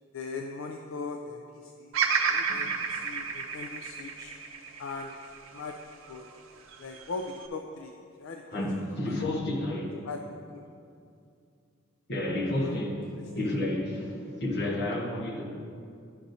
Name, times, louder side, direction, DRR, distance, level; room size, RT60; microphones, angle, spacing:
voice 1, 0.1-4.3 4.8-5.1 5.5-5.8 6.1-6.2 6.8-8.7 9.0-9.2 10.0-10.2 10.5-10.6 12.5-12.8 13.1-13.3, left 4 dB, 70° left, 3 dB, 0.4 m, -40 dB
Bird vocalization bird call bird song, 1.9-6.2 6.7-7.5, right 6 dB, 75° right, 0.6 m, -31 dB
voice 2, 2.5-2.8 8.5-10.0 12.1-13.1 13.4-15.4, left 1 dB, 55° left, -2 dB, 1.2 m, -31 dB
11.0 x 5.9 x 2.7 m, 2.4 s
head